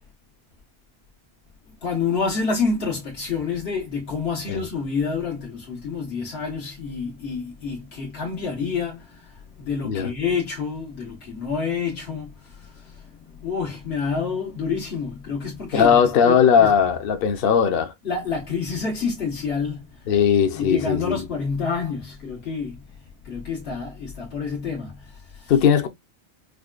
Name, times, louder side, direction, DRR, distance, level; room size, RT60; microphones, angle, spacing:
voice 1, 1.7-16.7 18.0-20.1 20.5-25.5, left 5 dB, 85° left, 1.4 m, -28 dB
voice 2, 15.7-17.9 20.1-21.2 25.5-25.9, left 7 dB, 65° left, 0.9 m, -18 dB
4.9 x 2.2 x 2.4 m
omnidirectional pair, 1.0 m